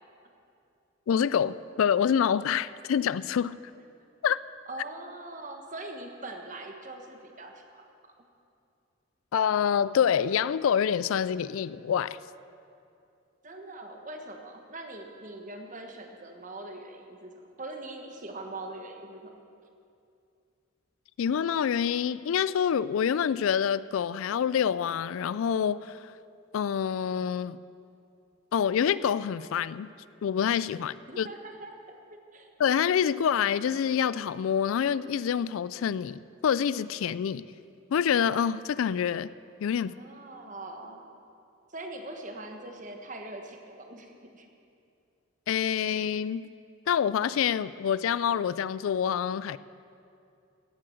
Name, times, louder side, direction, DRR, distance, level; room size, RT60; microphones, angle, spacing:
voice 1, 1.1-3.6 4.2-4.4 9.3-12.2 21.2-26.1 26.5-27.6 28.5-29.9 30.2-31.3 32.6-37.4 37.9-39.3 39.6-39.9 45.5-46.5 46.9-49.6, left 8 dB, 75° left, 18 dB, 0.3 m, -26 dB
voice 2, 4.7-8.1 13.4-17.3 17.6-19.3 31.1-32.5 39.8-41.0 41.7-44.5, right 2 dB, 35° right, 4 dB, 1.3 m, -42 dB
16.5 x 7.6 x 7.7 m, 2.5 s
head